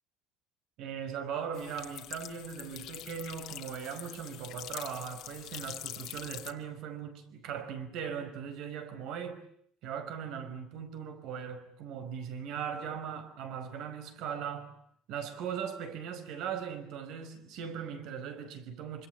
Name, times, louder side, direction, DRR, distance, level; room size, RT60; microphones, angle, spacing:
voice 1, 0.8-9.5 9.8-14.7 15.1-19.1, right 7 dB, 55° right, 5.3 m, -39 dB
sound 1, 1.5-6.5, left 14 dB, 50° left, 2.1 m, -44 dB
27.0 x 26.0 x 8.1 m
cardioid pair, 180°, 0 cm